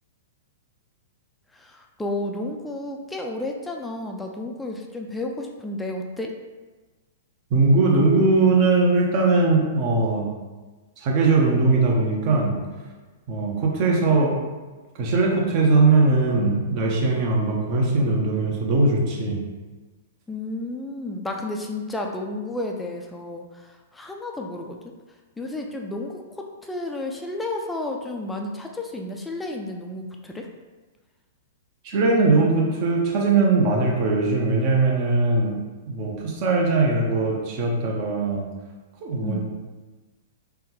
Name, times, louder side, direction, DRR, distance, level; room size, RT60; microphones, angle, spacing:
voice 1, 1.5-6.3 20.3-24.9 25.4-30.5 39.2-39.4, left 2 dB, 10° left, 1 dB, 0.3 m, -32 dB
voice 2, 7.5-10.3 11.0-12.5 13.3-14.4 15.0-19.4 31.8-35.5 35.9-38.4 39.0-39.4, right 3 dB, 45° right, -1 dB, 0.8 m, -20 dB
3.5 x 2.3 x 3.0 m, 1.3 s
hypercardioid pair, 115°, 0 cm